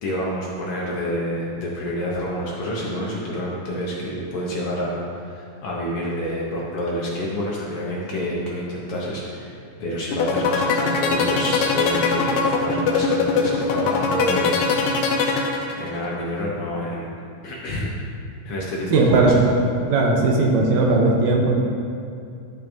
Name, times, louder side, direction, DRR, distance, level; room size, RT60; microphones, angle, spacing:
voice 1, 0.0-14.7 15.8-17.1 17.4-17.9 18.4-19.4, equal, 65° left, -4 dB, 1.6 m, -28 dB
sound 1, 10.1-16.1, left 5 dB, 90° left, 2.2 m, -21 dB
voice 2, 18.9-19.3 19.9-21.6, right 3 dB, 75° right, 0 dB, 2.1 m, -18 dB
12.5 x 5.9 x 2.7 m, 2.5 s
omnidirectional pair, 3.3 m